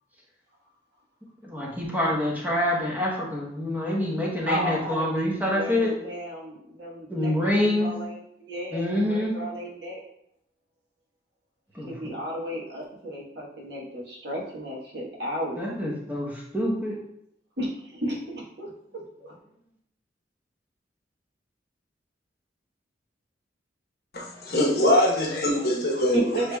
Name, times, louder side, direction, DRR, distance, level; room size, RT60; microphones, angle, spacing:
voice 1, 1.4-5.9 7.1-7.9 8.7-9.3 11.7-11.9 15.6-17.0, left 1 dB, 10° right, 1.0 m, -26 dB
voice 2, 4.5-10.0 11.8-15.6 17.6-19.3 26.1-26.6, right 1 dB, 60° right, 1.2 m, -33 dB
voice 3, 24.1-26.2, left 1 dB, 55° left, 1.0 m, -22 dB
6.8 x 3.3 x 2.3 m
head